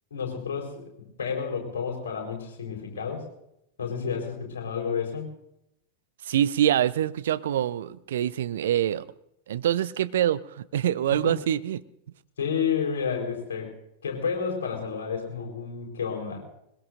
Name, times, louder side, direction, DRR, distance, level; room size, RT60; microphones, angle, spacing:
voice 1, 0.1-0.9 1.2-3.3 3.8-5.3 11.2-11.4 12.4-13.7 14.0-16.4, left 6 dB, 65° left, 1 dB, 4.4 m, -30 dB
voice 2, 6.2-9.1 9.5-11.8, right 11 dB, 60° right, 16 dB, 0.5 m, -25 dB
21.5 x 21.0 x 2.6 m, 0.81 s
figure-of-eight pair, 90°, 0 cm